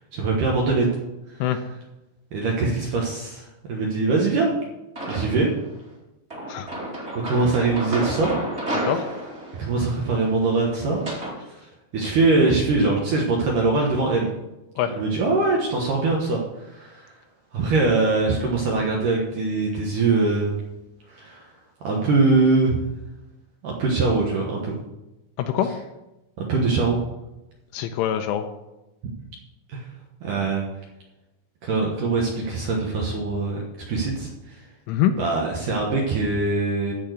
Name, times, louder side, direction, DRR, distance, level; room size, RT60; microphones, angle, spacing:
voice 1, 0.1-0.9 2.3-4.5 5.1-5.5 7.2-8.4 9.6-11.0 11.9-14.3 14.9-16.4 16.7-17.1 17.5-20.5 21.1-21.4 21.8-22.8 23.6-24.8 26.4-27.0 29.7-29.8 30.2-30.6 31.6-33.6 33.9-34.3 35.2-36.9, right 3 dB, 70° right, -1 dB, 2.0 m, -22 dB
sound 1, 5.0-5.6 6.3-11.4, right 1 dB, 25° right, 1.5 m, -31 dB
voice 2, 25.4-25.7 27.7-28.4 34.9-35.1, left 10 dB, 85° left, 6 dB, 3.1 m, -23 dB
13.0 x 4.5 x 8.0 m, 0.98 s
omnidirectional pair, 5.7 m